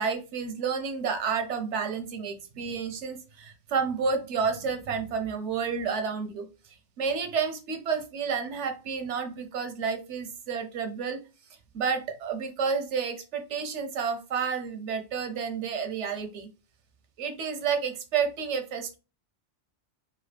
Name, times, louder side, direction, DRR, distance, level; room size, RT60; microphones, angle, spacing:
voice 1, 0.0-6.5 7.0-11.2 11.7-16.5 17.2-19.0, right 6 dB, 80° right, 7 dB, 1.0 m, -30 dB
3.9 x 2.7 x 3.3 m, 0.31 s
omnidirectional pair, 1.2 m